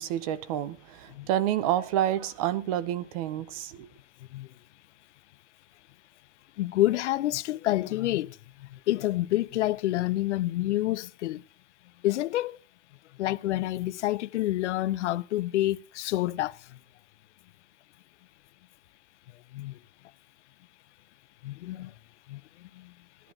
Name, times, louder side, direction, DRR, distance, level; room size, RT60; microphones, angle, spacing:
voice 1, 0.0-3.9, right 12 dB, 30° right, 0.5 m, -29 dB
voice 2, 6.6-8.3 8.9-11.4 12.0-12.6 13.2-16.5 19.5-19.8 21.4-21.9 22.3-22.4, left 15 dB, 65° left, 0.6 m, -28 dB
16.5 x 11.0 x 3.7 m
supercardioid pair, 160°, 37 cm